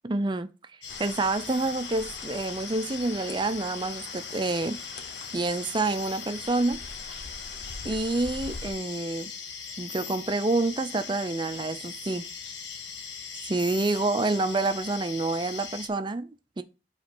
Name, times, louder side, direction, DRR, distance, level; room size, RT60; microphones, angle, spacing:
voice 1, 0.0-0.5 1.0-4.8 5.3-6.8 7.8-9.3 9.8-12.3 13.4-16.6, right 2 dB, 25° right, 0.5 m, -28 dB
sound 1, 0.8-15.9, left 6 dB, 85° left, 1.1 m, -40 dB
sound 2, 0.9-8.7, left 3 dB, 60° left, 0.8 m, -44 dB
7.6 x 3.2 x 6.0 m
head